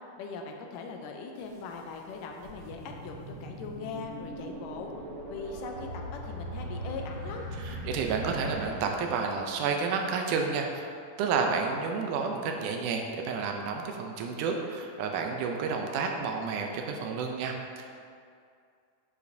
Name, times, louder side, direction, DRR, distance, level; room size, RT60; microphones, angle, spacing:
voice 1, 0.2-4.9 5.3-7.5, left 4 dB, 80° left, 2 dB, 2.2 m, -40 dB
sound 1, 1.4-1.5 2.0-9.7, right 1 dB, 50° right, 1.1 m, -40 dB
voice 2, 7.6-17.9, right 5 dB, 80° right, 2 dB, 2.0 m, -31 dB
9.9 x 4.8 x 2.6 m, 2.3 s
omnidirectional pair, 3.9 m